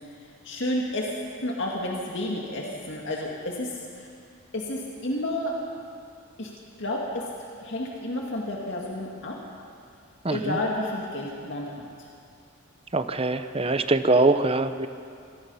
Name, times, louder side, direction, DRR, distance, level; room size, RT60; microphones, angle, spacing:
voice 1, 0.4-1.1 1.4-4.1 4.5-5.5 6.4-6.5 6.8-9.4 10.3-11.8, left 1 dB, 55° left, -2 dB, 2.2 m, -31 dB
voice 2, 10.2-10.6 12.9-14.9, right 2 dB, 25° right, 10 dB, 0.8 m, -23 dB
26.0 x 17.5 x 5.7 m, 2.4 s
head